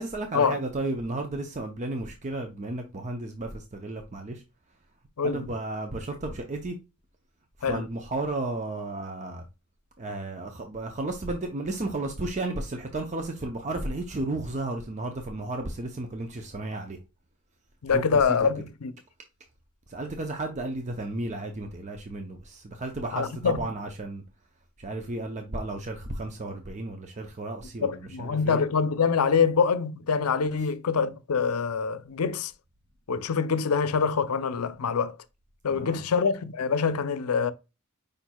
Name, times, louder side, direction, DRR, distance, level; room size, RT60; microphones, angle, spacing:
voice 1, 0.0-4.4 5.2-6.8 7.6-9.4 10.0-17.0 17.9-18.4 19.9-24.2 24.8-28.6 35.7-36.0, right 2 dB, 35° right, 0.6 m, -33 dB
voice 2, 5.2-5.5 7.6-7.8 17.8-18.9 23.1-23.7 27.8-32.5 33.1-35.2 35.6-37.5, left 5 dB, 85° left, 0.5 m, -25 dB
5.1 x 4.4 x 2.2 m
head